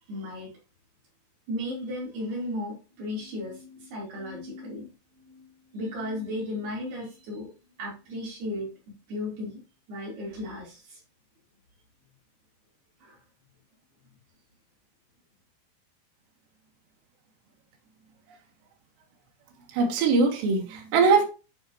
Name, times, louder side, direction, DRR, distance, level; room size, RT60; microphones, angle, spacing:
voice 1, 0.1-0.5 1.5-4.9 5.2-7.5 7.8-9.6 9.9-11.0 13.0-13.2, left 1 dB, 70° right, -4 dB, 6.0 m, -35 dB
voice 2, 19.7-21.3, right 4 dB, 85° right, 1 dB, 3.7 m, -21 dB
11.5 x 4.9 x 3.1 m, 0.32 s
omnidirectional pair, 4.9 m